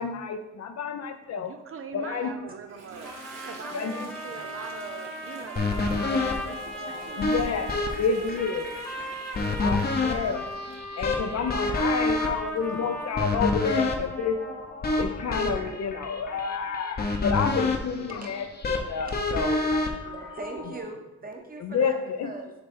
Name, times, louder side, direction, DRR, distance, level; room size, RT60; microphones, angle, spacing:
voice 1, 0.0-1.5 1.9-2.4 3.7-4.1 7.2-8.7 9.6-10.4 11.0-14.4 15.0-18.5 18.7-19.9 21.6-22.3, left 5 dB, 60° left, 7 dB, 0.7 m, -29 dB
voice 2, 1.4-3.1 3.4-7.4 7.8-8.3 8.5-8.7 8.9-9.0 9.5-9.7, right 5 dB, 45° right, 6 dB, 0.6 m, -43 dB
Toilet flush, 2.5-13.1, right 3 dB, 65° right, 1.4 m, -49 dB
sound 1, 3.0-14.7, equal, 5° left, 1.2 m, -38 dB
sound 2, 5.6-20.8, left 3 dB, 30° left, 0.9 m, -29 dB
voice 3, 20.0-22.5, right 2 dB, 30° right, 2 dB, 1.2 m, -40 dB
6.7 x 3.2 x 4.4 m, 0.94 s
cardioid pair, 90°, 30 cm